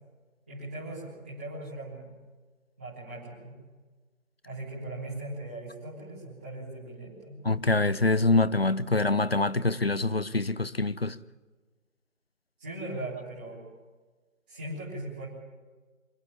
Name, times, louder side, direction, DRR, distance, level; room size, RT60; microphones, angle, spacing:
voice 1, 0.5-2.1 2.8-3.6 4.4-7.4 12.6-13.6 14.5-15.3, right 1 dB, 5° right, 1.4 m, -39 dB
voice 2, 7.4-11.2, left 2 dB, 45° left, 0.6 m, -25 dB
25.0 x 11.0 x 9.9 m
figure-of-eight pair, 165°, 41 cm